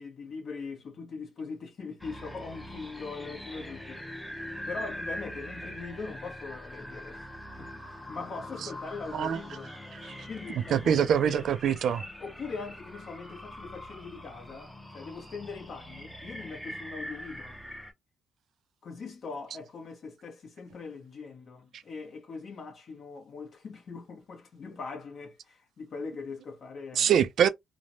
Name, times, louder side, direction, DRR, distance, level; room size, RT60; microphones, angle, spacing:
voice 1, 0.0-7.3 7.6-9.7 10.2-11.4 12.0-17.6 18.8-27.1, left 4 dB, 50° left, 0.9 m, -41 dB
sound 1, 2.0-17.9, equal, 5° left, 0.5 m, -43 dB
voice 2, 10.5-12.0 27.0-27.5, right 8 dB, 65° right, 0.3 m, -24 dB
3.1 x 2.0 x 2.6 m
cardioid pair, 100°, 0 cm